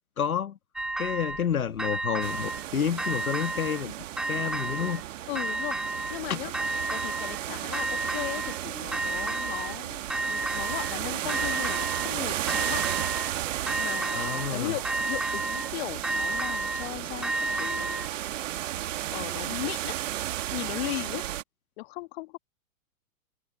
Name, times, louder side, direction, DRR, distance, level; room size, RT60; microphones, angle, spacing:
voice 1, 0.2-0.6 1.0-3.9 4.3-5.0 6.3-6.4 14.1-14.7, left 8 dB, 85° left, 1.7 m, -29 dB
sound 1, 0.8-1.5 1.8-2.6 3.0-3.8 4.2-5.0 5.4-6.2 6.5-7.4 7.7-8.6 8.9-9.8 10.1-11.0 11.3-12.1 12.5-13.3 13.7-14.5 14.8-15.7 16.0-18.1, right 2 dB, ahead, 0.4 m, -31 dB
sound 2, 2.2-21.4, right 13 dB, 60° right, 1.5 m, -34 dB
voice 2, 5.3-5.8 6.1-6.5 6.9-12.8 13.8-18.1 19.1-20.0 20.5-21.2 21.8-22.4, left 21 dB, 45° left, 1.9 m, -37 dB
hypercardioid pair, 115°, 42 cm